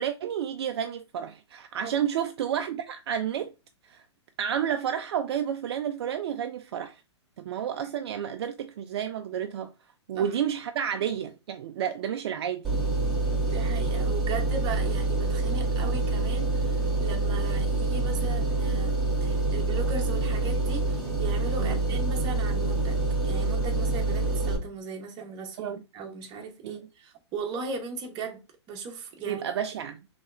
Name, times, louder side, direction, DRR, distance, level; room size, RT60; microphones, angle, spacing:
voice 1, 0.0-3.5 3.9-4.0 4.4-7.0 7.4-9.7 10.1-12.7 21.6-21.8 25.6-25.8 26.6-26.8 29.3-30.0, right 9 dB, 60° right, 0.4 m, -30 dB
sound 1, 12.6-24.6, right 2 dB, ahead, 1.9 m, -26 dB
voice 2, 13.5-23.0 23.2-28.4 28.7-29.4, right 4 dB, 30° right, 1.1 m, -38 dB
4.0 x 3.2 x 2.5 m
hypercardioid pair, 120°, 15 cm